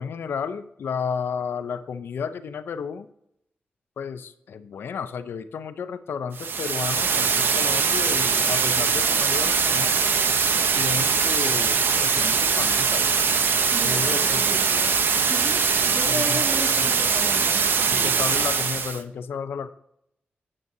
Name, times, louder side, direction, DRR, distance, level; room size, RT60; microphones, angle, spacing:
voice 1, 0.0-3.1 4.0-10.0 10.8-13.0 13.8-14.4 16.1-16.4 16.8-16.9 17.9-19.7, left 6 dB, 85° left, 11 dB, 0.6 m, -32 dB
sound 1, 6.3-19.0, right 5 dB, 70° right, 0.7 m, -22 dB
voice 2, 13.7-18.2, right 1 dB, 35° right, 1 dB, 2.3 m, -35 dB
9.4 x 8.7 x 2.7 m, 0.77 s
wide cardioid pair, 90°, 4 cm